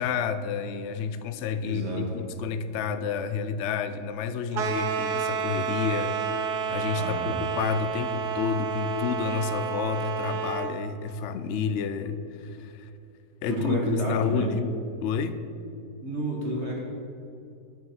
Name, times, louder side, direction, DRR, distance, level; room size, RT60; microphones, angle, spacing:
voice 1, 0.0-12.9 13.4-14.7 15.0-15.4, left 6 dB, 70° left, 11 dB, 0.7 m, -30 dB
voice 2, 1.6-2.2 7.0-7.4 13.5-14.5 16.0-16.8, right 1 dB, 45° right, -1 dB, 1.4 m, -29 dB
sound 1, 4.5-10.8, right 7 dB, 80° right, 1.3 m, -30 dB
9.2 x 6.4 x 5.5 m, 2.7 s
omnidirectional pair, 1.7 m